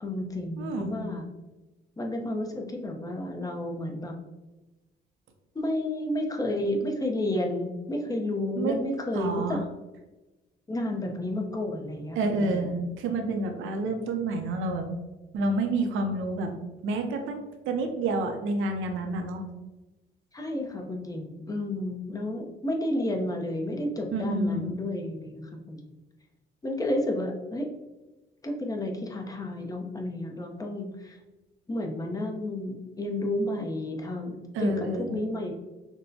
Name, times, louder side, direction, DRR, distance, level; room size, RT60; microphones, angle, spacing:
voice 1, 0.0-1.2 2.0-4.1 5.5-9.6 10.7-12.6 20.3-25.8 26.6-27.7 28.4-31.2 31.7-34.8 35.1-35.5, left 1 dB, 20° left, 2 dB, 0.7 m, -31 dB
voice 2, 0.6-1.0 8.6-8.8 9.1-9.6 12.1-14.9 15.3-16.5 16.8-19.4 24.1-24.7 34.5-35.2, right 2 dB, 85° right, 5 dB, 0.6 m, -29 dB
6.0 x 2.2 x 2.7 m, 1.1 s
cardioid pair, 90°, 20 cm